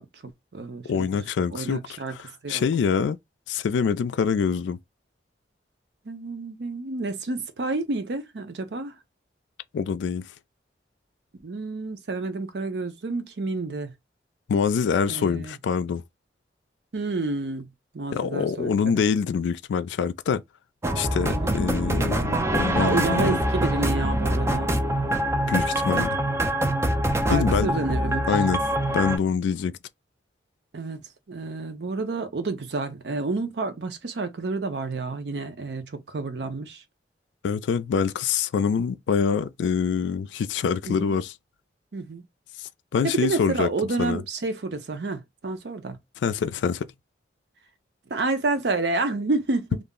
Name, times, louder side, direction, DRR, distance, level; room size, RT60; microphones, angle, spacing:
voice 1, 0.0-1.1 1.5-2.2 2.4-2.6 6.1-9.0 11.4-13.9 15.1-15.5 16.9-17.7 17.9-19.0 21.3-21.6 22.7-24.7 27.3-28.4 30.7-31.0 31.3-36.8 40.9-41.1 41.9-42.2 43.0-46.0 48.1-49.8, right 3 dB, 70° right, 0.6 m, -29 dB
voice 2, 0.9-1.8 2.1-3.2 3.5-4.8 9.7-10.3 14.5-16.0 18.1-20.4 20.9-23.4 25.5-26.2 27.3-27.7 28.3-28.6 28.9-29.7 37.4-41.3 42.6-43.7 44.0-44.2 46.2-46.9, left 6 dB, 80° left, 0.3 m, -25 dB
sound 1, 20.8-29.2, right 1 dB, 15° right, 0.3 m, -24 dB
2.4 x 2.0 x 3.5 m
head